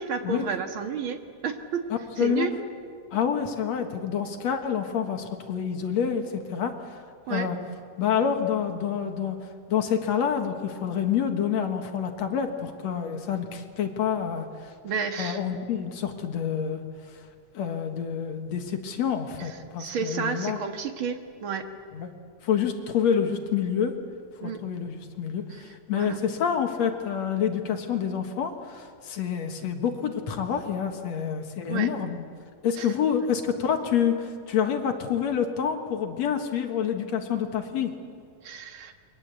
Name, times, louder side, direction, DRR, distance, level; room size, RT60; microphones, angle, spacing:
voice 1, 0.0-1.9 2.2-2.6 7.3-7.5 14.8-15.4 19.8-21.7 24.4-24.6 25.9-26.2 31.6-31.9 32.8-32.9 38.4-38.9, right 6 dB, 50° right, 6 dB, 2.1 m, -31 dB
voice 2, 2.2-2.5 3.1-6.9 7.3-7.6 8.0-14.7 15.2-16.8 17.5-20.6 21.9-22.1 22.4-24.0 24.4-32.2 32.6-37.9, left 8 dB, 65° left, 5 dB, 2.7 m, -28 dB
28.0 x 22.5 x 8.3 m, 2.2 s
omnidirectional pair, 3.4 m